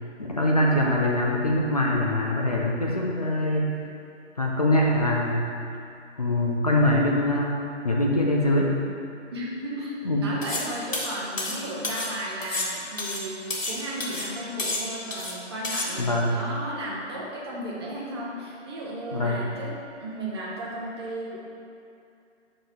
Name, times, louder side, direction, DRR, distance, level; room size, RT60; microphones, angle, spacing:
voice 1, 0.2-3.7 4.4-5.5 6.2-8.8 10.0-10.3 16.0-16.4 19.1-19.4, left 1 dB, 30° left, -2 dB, 0.5 m, -23 dB
voice 2, 9.3-21.4, right 1 dB, 20° right, -5 dB, 0.8 m, -34 dB
sound 1, 10.4-10.7 10.9-12.1 12.4-13.8 14.0-14.3 14.6-15.3 15.6-15.9, left 2 dB, 85° left, 1.2 m, -30 dB
5.0 x 4.7 x 5.6 m, 2.6 s
figure-of-eight pair, 145°, 38 cm